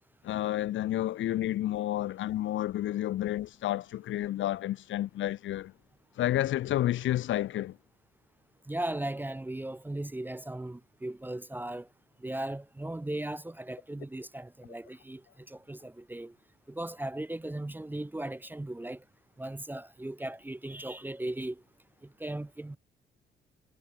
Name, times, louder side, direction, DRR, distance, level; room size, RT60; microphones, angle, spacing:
voice 1, 0.2-5.7 6.2-7.8, left 13 dB, 75° left, 1.2 m, -30 dB
voice 2, 8.7-11.9 12.2-16.4 16.7-19.0 19.4-21.6 22.0-22.8, right 1 dB, 10° right, 0.7 m, -37 dB
cardioid pair, 90°, 20 cm